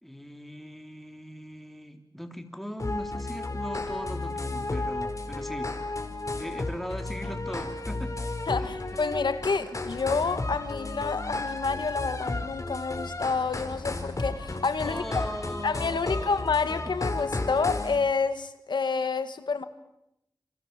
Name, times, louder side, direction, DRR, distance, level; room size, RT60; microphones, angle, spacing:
voice 1, 0.0-5.8 6.4-8.1 8.6-8.8 14.8-16.3 16.9-17.1, equal, ahead, 3.6 m, -39 dB
sound 1, 2.8-18.0, left 2 dB, 45° left, 4.7 m, -33 dB
voice 2, 8.5-15.3 15.6-19.6, left 4 dB, 90° left, 1.8 m, -29 dB
28.5 x 26.5 x 7.6 m
wide cardioid pair, 60°, 8 cm